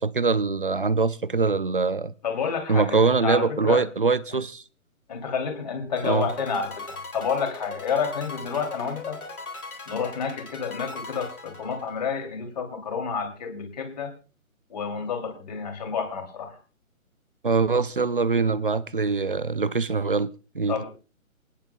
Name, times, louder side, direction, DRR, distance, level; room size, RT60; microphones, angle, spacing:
voice 1, 0.0-2.1 2.7-4.6 6.0-6.3 17.4-20.8, right 4 dB, 40° right, 0.5 m, -23 dB
voice 2, 2.2-3.8 5.1-9.2 9.9-14.1 14.7-16.6 20.7-20.9, left 6 dB, 30° left, 2.9 m, -29 dB
sound 1, 6.0-12.3, left 3 dB, 85° left, 3.7 m, -39 dB
27.5 x 10.0 x 2.3 m
hypercardioid pair, 170°, 43 cm